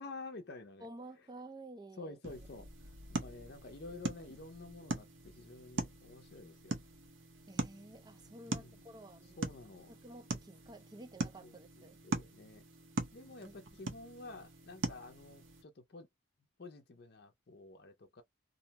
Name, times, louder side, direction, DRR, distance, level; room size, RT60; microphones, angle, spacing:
voice 1, 0.0-0.9 2.0-2.9 3.2-6.8 8.5-8.8 9.4-9.9 11.4-12.7 13.1-16.1 16.6-18.2, left 3 dB, 55° left, 0.6 m, -50 dB
voice 2, 0.8-2.2 4.3-4.4 7.5-9.6 9.9-12.0 13.4-13.6, right 1 dB, 20° right, 0.4 m, -52 dB
sound 1, 2.2-15.6, right 2 dB, 75° right, 0.7 m, -42 dB
2.6 x 2.1 x 2.8 m
head